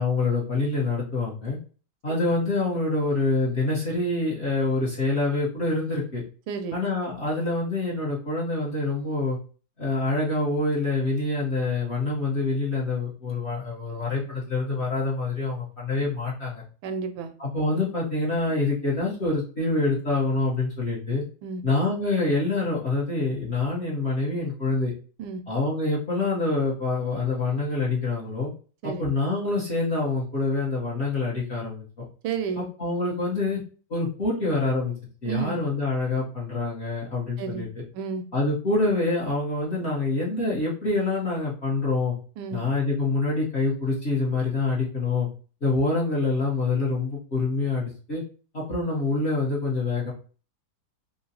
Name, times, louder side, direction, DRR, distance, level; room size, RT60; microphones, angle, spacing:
voice 1, 0.0-1.6 2.0-6.2 6.7-9.4 9.8-16.6 17.4-21.2 21.6-24.9 25.5-28.5 28.8-31.8 32.6-33.6 33.9-34.9 35.2-37.7 38.3-42.1 42.5-45.3 45.6-48.2 48.5-50.1, left 3 dB, 40° left, -6 dB, 1.1 m, -26 dB
voice 2, 6.5-6.8 16.8-17.4 21.4-21.6 25.2-25.4 28.8-29.1 32.2-32.6 35.3-35.6 37.4-37.6 37.9-38.2 42.4-42.6, right 6 dB, 80° right, 8 dB, 1.3 m, -31 dB
3.8 x 2.9 x 2.8 m, 0.39 s
omnidirectional pair, 2.2 m